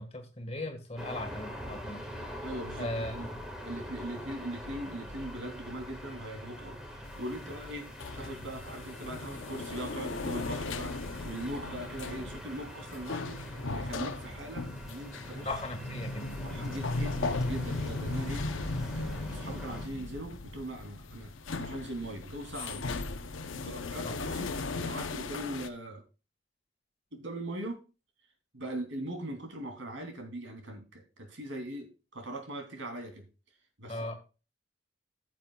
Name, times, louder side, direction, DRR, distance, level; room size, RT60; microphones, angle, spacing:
voice 1, 0.0-2.0 2.8-3.3 15.4-16.3 24.0-24.2 33.9-34.1, left 1 dB, 30° left, 5 dB, 1.7 m, -38 dB
sound 1, 1.0-19.9, equal, 5° right, 1.7 m, -44 dB
voice 2, 2.4-3.3 3.6-7.9 8.2-13.4 13.7-15.5 16.4-18.5 18.9-23.0 23.6-26.0 27.1-27.8 28.5-33.3 33.8-34.2, right 1 dB, 80° right, 4 dB, 2.8 m, -40 dB
sound 2, 7.0-25.7, left 3 dB, 85° left, 0.8 m, -37 dB
14.5 x 7.5 x 2.3 m, 0.32 s
head